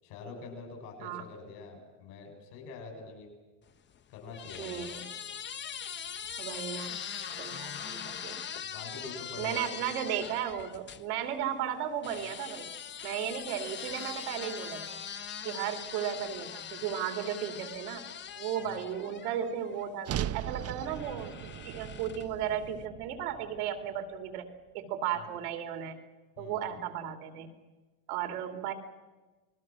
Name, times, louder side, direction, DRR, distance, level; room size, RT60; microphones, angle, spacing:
voice 1, 0.0-3.3 4.1-4.9 8.6-9.9 18.6-18.8 25.1-25.3 26.4-26.7, left 4 dB, 80° left, 3 dB, 7.9 m, -45 dB
sound 1, 3.7-11.1 12.0-19.9 20.8-22.4, left 8 dB, 25° left, 0.7 m, -42 dB
voice 2, 4.6-5.0 6.4-8.5 9.4-12.7 13.0-15.0 15.4-18.0 18.4-21.3 21.6-24.5 24.7-26.0 26.4-27.5 28.1-28.7, right 9 dB, 90° right, 6 dB, 3.0 m, -35 dB
sound 2, 20.0-24.3, right 11 dB, 35° right, 0.7 m, -39 dB
29.0 x 20.5 x 6.3 m, 1.2 s
supercardioid pair, 110°, 43 cm